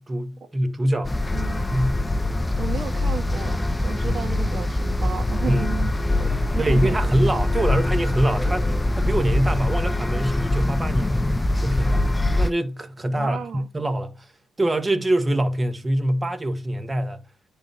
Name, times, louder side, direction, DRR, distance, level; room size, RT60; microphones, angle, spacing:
voice 1, 0.0-1.2 1.7-2.0 5.4-5.6 6.6-11.2 11.5-12.1 12.3-14.3 14.6-17.2, right 1 dB, 20° right, 1.6 m, -24 dB
sound 1, 1.0-12.5, left 1 dB, 15° left, 0.5 m, -23 dB
voice 2, 2.6-3.6 3.8-7.0 7.4-7.5 13.1-13.7, right 6 dB, 45° right, 1.8 m, -33 dB
10.0 x 3.7 x 4.1 m
cardioid pair, 90°, 0 cm